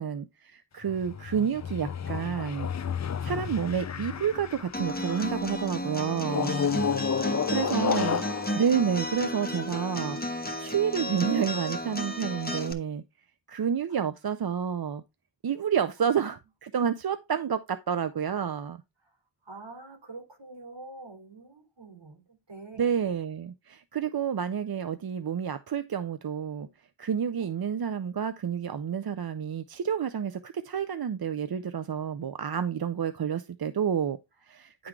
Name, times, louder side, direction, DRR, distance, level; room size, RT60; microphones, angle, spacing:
voice 1, 0.0-2.7 3.2-6.6 7.5-8.2 8.5-13.0 13.5-15.0 15.4-18.8 22.8-26.7 27.0-34.9, right 7 dB, 55° right, 0.6 m, -29 dB
sound 1, 0.8-5.5 6.3-9.9, left 7 dB, 40° left, 0.5 m, -32 dB
Acoustic guitar, 4.7-12.7, equal, 20° left, 1.2 m, -33 dB
voice 2, 7.1-8.2 13.9-14.0 16.0-16.1 19.0-19.2 19.4-22.9 34.8-34.9, right 3 dB, 70° right, 3.2 m, -46 dB
10.0 x 3.7 x 4.6 m
wide cardioid pair, 60°, 46 cm